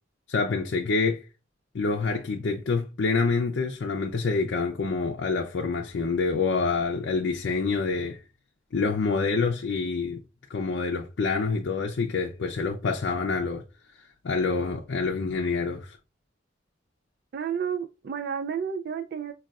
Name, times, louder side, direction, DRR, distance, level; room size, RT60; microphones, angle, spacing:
voice 1, 0.3-1.2 1.7-8.2 8.7-10.2 10.5-13.6 14.0-16.0, left 4 dB, 70° left, 0.5 m, -27 dB
voice 2, 17.3-19.3, right 7 dB, 60° right, 0.3 m, -31 dB
5.2 x 2.3 x 2.3 m
head